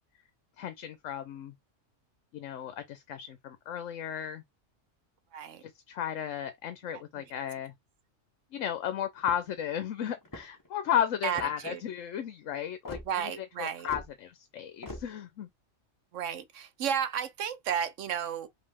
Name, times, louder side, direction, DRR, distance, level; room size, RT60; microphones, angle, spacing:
voice 1, 0.6-1.5 2.3-4.4 5.6-7.7 8.5-13.0 13.2-15.5, left 10 dB, 75° left, 1.0 m, -34 dB
voice 2, 5.3-5.6 6.9-7.2 11.2-11.8 13.1-13.9 16.1-18.5, right 8 dB, 75° right, 1.1 m, -33 dB
sound 1, 9.2-9.6 10.2-10.7 11.3-11.7 12.8-13.1 13.8-14.1 14.8-15.1, left 2 dB, 15° left, 0.9 m, -42 dB
5.2 x 2.8 x 3.4 m
omnidirectional pair, 1.3 m